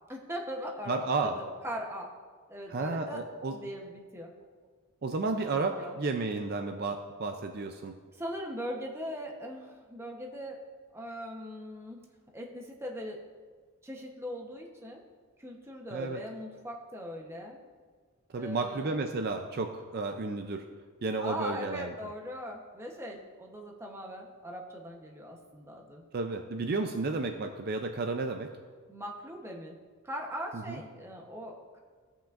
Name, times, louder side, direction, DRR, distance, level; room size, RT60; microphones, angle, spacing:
voice 1, 0.1-2.1 2.5-3.3 3.5-4.3 5.4-6.0 8.1-10.6 10.9-12.0 12.3-13.2 13.8-15.0 15.4-17.6 18.3-18.9 21.2-26.0 28.9-29.8 30.0-31.8, equal, 10° right, 1 dB, 0.9 m, -40 dB
voice 2, 0.9-1.3 2.7-3.5 5.0-7.9 15.9-16.2 18.3-20.7 21.0-21.9 26.1-28.5 30.7-30.8, right 3 dB, 45° right, 5 dB, 0.4 m, -32 dB
15.5 x 5.9 x 2.5 m, 1.5 s
head